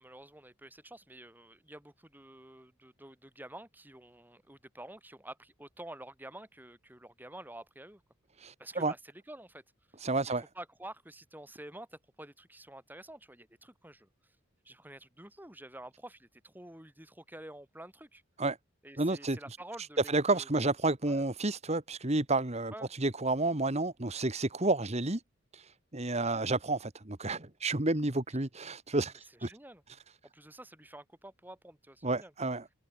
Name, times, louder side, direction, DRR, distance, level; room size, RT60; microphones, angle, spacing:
voice 1, 0.0-8.0 8.6-9.6 10.5-14.4 14.6-18.2 18.8-20.5 21.1-21.3 22.7-22.9 26.1-26.4 29.5-29.8 30.3-32.3, right 1 dB, 10° right, 6.8 m, -49 dB
voice 2, 8.4-8.9 10.0-10.4 18.4-18.6 19.0-19.4 20.1-25.2 25.5-29.5 32.0-32.6, right 2 dB, 30° right, 1.7 m, -31 dB
head